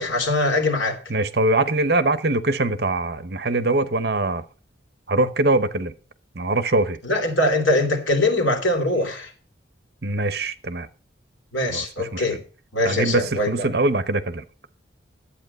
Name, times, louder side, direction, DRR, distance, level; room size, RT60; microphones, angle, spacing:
voice 1, 0.0-1.0 7.0-9.3 11.5-12.4 12.7-13.7, left 1 dB, 85° left, 3.1 m, -22 dB
voice 2, 1.1-4.4 5.1-5.9 6.3-7.0 10.0-10.9 11.7-12.2 12.8-14.4, right 2 dB, 55° right, 0.9 m, -22 dB
11.5 x 8.5 x 5.3 m
head